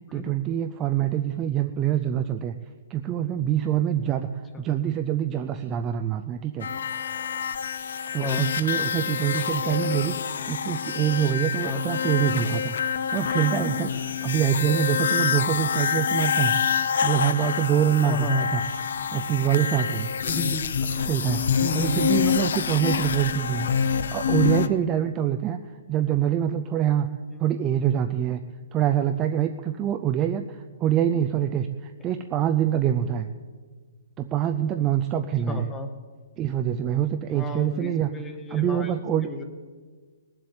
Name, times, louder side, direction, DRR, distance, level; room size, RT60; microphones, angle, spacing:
voice 1, 0.1-2.6 2.9-4.3 4.6-6.7 8.1-10.2 10.4-13.9 14.2-16.5 17.0-18.6 19.1-20.1 20.9-23.7 24.1-25.6 25.9-27.1 27.4-28.4 28.7-33.3 34.2-35.7 36.4-38.1 38.5-39.3, right 10 dB, 15° right, 7 dB, 0.3 m, -25 dB
sound 1, 6.6-24.7, left 7 dB, 55° left, 0.7 m, -27 dB
voice 2, 8.1-8.5 11.6-11.8 14.5-14.6 18.0-18.4 20.2-20.6 21.6-22.1 27.3-27.4 30.2-30.4 35.5-35.9 37.3-38.9 39.2-39.4, left 2 dB, 5° left, 7 dB, 0.9 m, -32 dB
18.5 x 7.6 x 8.6 m, 1.5 s
hypercardioid pair, 180°, 0 cm